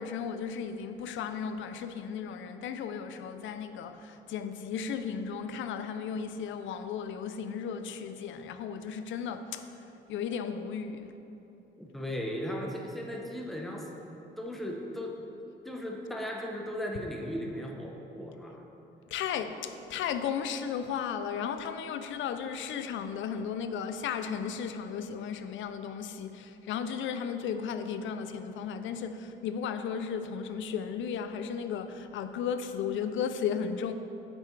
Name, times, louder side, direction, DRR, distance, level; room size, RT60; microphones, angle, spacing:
voice 1, 0.0-9.7 10.1-11.1 19.1-33.9, left 7 dB, 75° left, 0.5 m, -35 dB
voice 2, 11.8-13.9 14.4-18.7 19.4-19.5, equal, ahead, 0.7 m, -37 dB
8.3 x 6.8 x 3.2 m
cardioid pair, 90°, 20 cm